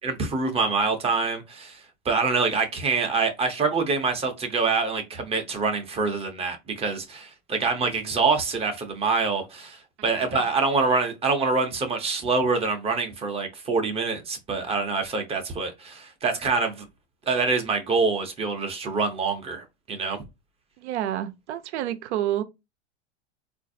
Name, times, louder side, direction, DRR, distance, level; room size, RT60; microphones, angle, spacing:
voice 1, 0.0-16.8 17.3-20.2, right 4 dB, 15° right, 0.6 m, -25 dB
voice 2, 10.0-10.4 20.8-22.4, right 12 dB, 75° right, 0.6 m, -29 dB
3.8 x 2.5 x 2.5 m
supercardioid pair, 130°, 34 cm